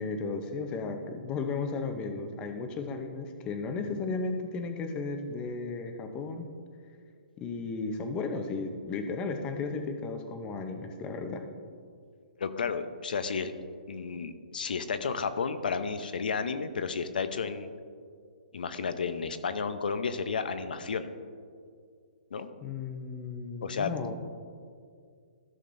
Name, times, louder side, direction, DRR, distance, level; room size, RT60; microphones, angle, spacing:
voice 1, 0.0-6.5 7.4-11.4 22.6-24.1, left 4 dB, 20° left, 6 dB, 0.7 m, -34 dB
voice 2, 12.4-13.5 13.9-17.7 18.5-21.1 22.3-22.5 23.6-24.1, left 5 dB, 75° left, 11 dB, 0.7 m, -32 dB
14.5 x 6.5 x 2.6 m, 2.2 s
hypercardioid pair, 150°, 5 cm